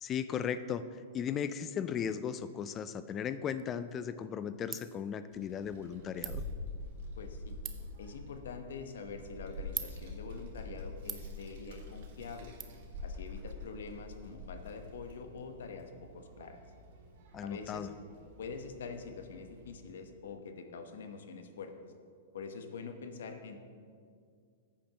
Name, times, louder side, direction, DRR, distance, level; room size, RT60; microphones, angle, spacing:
voice 1, 0.0-6.4 17.3-17.9, left 8 dB, 25° left, 13 dB, 0.4 m, -36 dB
Ratchet pawl, 3.5-12.6, right 9 dB, 25° right, 0.7 m, -48 dB
Child speech kid speaking, 5.3-19.7, left 2 dB, 65° right, 2.0 m, -46 dB
voice 2, 7.2-7.6 8.0-12.5 13.0-16.6 17.4-17.9 18.4-21.7 22.3-23.6, left 5 dB, 80° left, 6 dB, 1.0 m, -45 dB
13.5 x 8.5 x 3.0 m, 2.2 s
hypercardioid pair, 135°, 0 cm